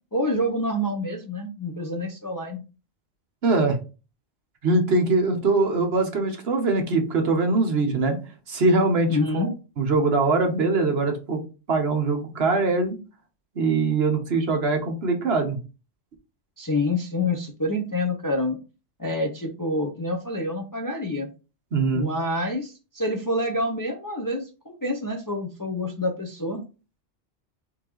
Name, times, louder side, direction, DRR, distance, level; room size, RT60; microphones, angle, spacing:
voice 1, 0.1-2.6 9.1-9.5 16.6-18.6 19.0-21.3 21.9-26.6, left 1 dB, 25° left, 3 dB, 0.5 m, -27 dB
voice 2, 3.4-3.8 4.6-8.2 8.5-9.5 9.8-11.4 11.7-12.9 13.5-15.6 21.7-22.1, right 3 dB, 60° right, 4 dB, 1.2 m, -22 dB
4.3 x 3.8 x 3.0 m, 0.32 s
omnidirectional pair, 1.2 m